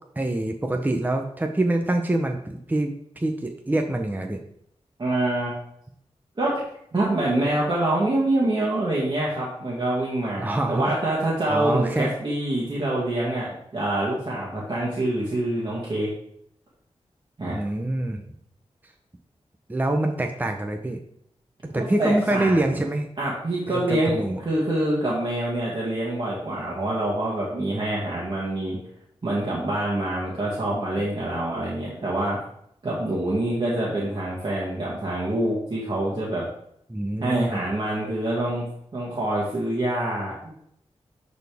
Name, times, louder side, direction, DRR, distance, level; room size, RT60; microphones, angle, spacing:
voice 1, 0.2-4.4 10.4-10.9 11.5-12.1 17.5-18.2 19.7-21.0 21.7-23.1 23.7-24.4 36.9-37.6, right 1 dB, 15° right, 4 dB, 0.7 m, -25 dB
voice 2, 5.0-5.5 6.4-6.6 6.9-16.1 17.4-17.5 21.7-22.8 23.2-28.8 29.2-32.4 32.8-36.4 37.2-38.7 38.9-40.6, right 1 dB, 40° right, -6 dB, 1.9 m, -26 dB
11.0 x 4.2 x 3.5 m, 0.72 s
wide cardioid pair, 100°, 11 cm